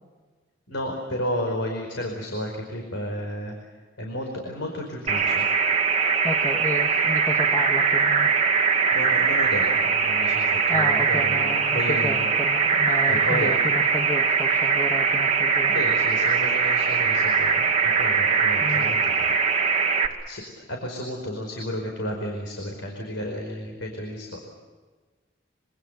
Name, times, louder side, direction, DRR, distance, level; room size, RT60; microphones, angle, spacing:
voice 1, 0.7-3.5 4.0-5.5 8.9-12.3 13.0-13.5 15.7-19.3 20.2-20.4 20.7-24.5, equal, 75° left, 2 dB, 5.0 m, -32 dB
sound 1, 5.1-20.1, right 5 dB, 35° right, 2.2 m, -21 dB
voice 2, 6.2-8.3 10.7-15.8 18.6-18.9, left 1 dB, 15° left, 3 dB, 1.4 m, -32 dB
26.0 x 25.5 x 6.9 m, 1.4 s
head